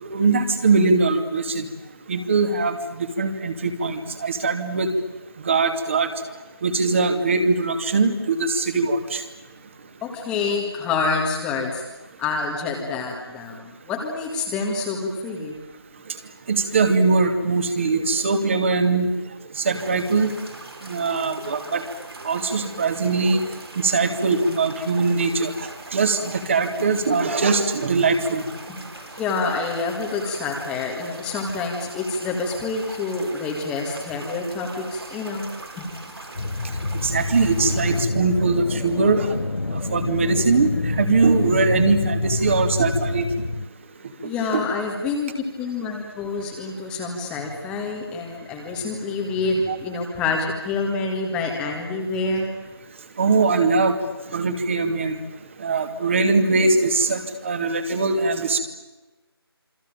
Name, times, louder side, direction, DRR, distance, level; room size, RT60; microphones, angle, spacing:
voice 1, 0.0-1.6 2.1-4.9 5.4-6.1 6.6-9.2 16.5-19.1 19.6-20.3 20.8-21.8 22.2-23.4 23.8-28.4 37.0-39.4 39.7-43.3 44.5-44.6 49.7-49.8 53.2-54.0 54.3-55.2 55.6-58.6, right 3 dB, 30° right, 7 dB, 2.5 m, -21 dB
voice 2, 10.0-11.8 12.2-15.6 28.7-35.5 35.8-35.9 44.2-52.5, left 4 dB, 5° left, 0 dB, 1.8 m, -27 dB
sound 1, 19.7-38.0, right 2 dB, 70° right, 6.5 m, -41 dB
sound 2, 36.3-43.7, left 3 dB, 75° left, 1.0 m, -27 dB
27.5 x 24.5 x 9.0 m, 1.1 s
figure-of-eight pair, 160°, 13 cm